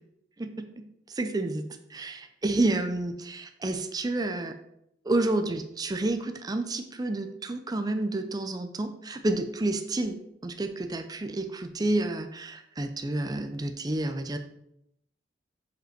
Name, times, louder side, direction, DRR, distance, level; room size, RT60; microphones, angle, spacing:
voice 1, 0.4-4.5 5.0-10.2 10.4-14.4, right 2 dB, 20° right, 7 dB, 0.5 m, -30 dB
5.3 x 5.2 x 5.8 m, 0.78 s
head